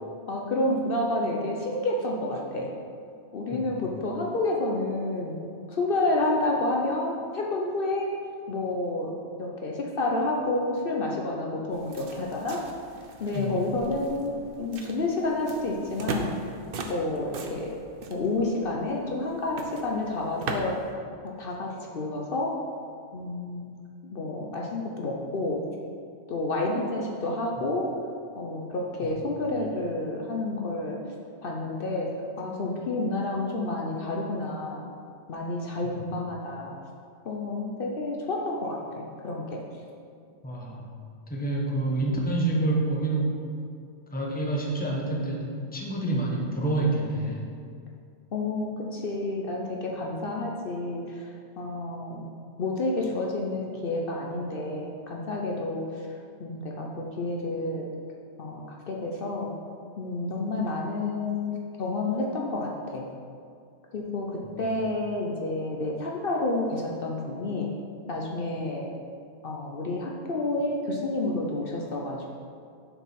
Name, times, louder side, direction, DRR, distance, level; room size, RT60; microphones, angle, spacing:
voice 1, 0.3-2.7 3.3-5.4 5.7-8.1 8.5-9.1 9.4-12.6 13.2-16.3 16.8-17.8 18.1-20.8 21.2-22.6 23.1-23.7 24.1-25.6 26.3-27.9 28.3-31.0 31.4-34.9 35.3-36.7 37.3-39.6 48.3-51.3 51.6-52.3 52.6-56.1 56.4-57.9 58.4-59.5 60.0-61.5 61.8-63.1 63.9-67.7 68.1-68.9 69.4-72.3, left 2 dB, 55° left, -1 dB, 0.9 m, -29 dB
voice 2, 3.5-3.8 13.3-13.5 29.2-29.4 36.0-36.1 40.4-40.9 41.3-43.5 44.1-47.4 64.4-64.6, right 2 dB, 10° left, -2 dB, 0.9 m, -28 dB
sound 1, 11.7-20.9, right 3 dB, 60° right, 0.8 m, -39 dB
6.8 x 4.7 x 5.8 m, 2.3 s
omnidirectional pair, 1.2 m